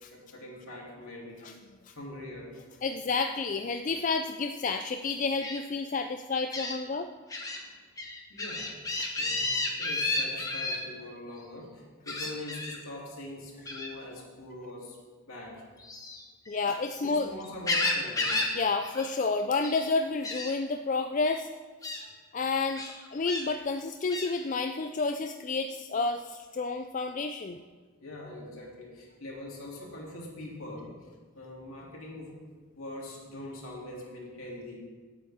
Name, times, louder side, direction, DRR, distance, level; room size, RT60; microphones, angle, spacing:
voice 1, 0.1-1.5 1.9-2.5 7.4-7.7 8.3-9.5 9.8-15.0 15.2-15.6 17.0-18.5 21.9-22.1 28.0-31.1 31.3-32.3 32.8-34.8, left 1 dB, 70° left, -3 dB, 3.2 m, -43 dB
voice 2, 2.8-7.1 9.0-9.1 16.5-17.3 18.5-21.5 22.3-22.8 23.1-27.6, left 4 dB, 35° left, 6 dB, 0.3 m, -30 dB
Gull seagull, 5.4-5.6 6.5-6.7 7.3-7.6 8.0-10.8 12.1-12.8 13.7-13.9 15.8-17.0 17.4-18.6 18.8-19.1 19.4-19.9 20.2-20.5 21.2-21.4 21.8-22.0 22.8-23.5 24.1-24.3, left 2 dB, 15° left, 1.2 m, -32 dB
17.5 x 8.5 x 3.6 m, 1.4 s
head